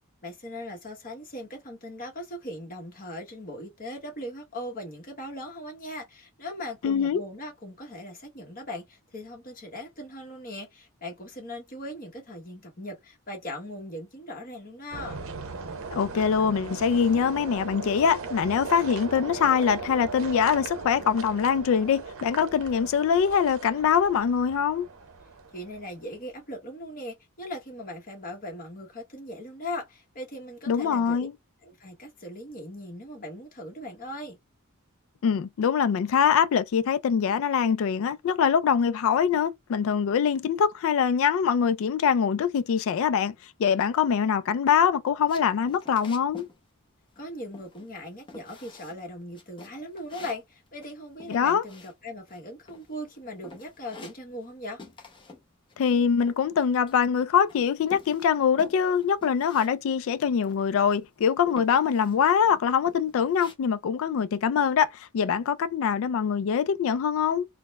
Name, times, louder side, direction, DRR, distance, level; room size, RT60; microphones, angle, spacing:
voice 1, 0.2-15.2 25.5-31.3 31.6-34.4 47.2-54.8, left 1 dB, 40° left, 1.1 m, -39 dB
voice 2, 6.8-7.2 15.9-24.9 30.7-31.3 35.2-43.3 43.6-46.5 51.3-51.6 55.8-67.5, left 7 dB, 65° left, 0.3 m, -23 dB
sound 1, 14.9-26.1, right 4 dB, 65° right, 0.7 m, -38 dB
sound 2, 45.3-46.6 46.8-47.3 47.5-48.0 48.3-49.0 49.3-52.4 52.7-53.2 53.4-54.5 54.8-55.4 55.7-57.2 57.5-59.7 60.0-60.1 60.4-61.0 61.5-62.2 62.6-63.5, left 3 dB, 25° left, 0.7 m, -48 dB
3.9 x 2.1 x 2.3 m
head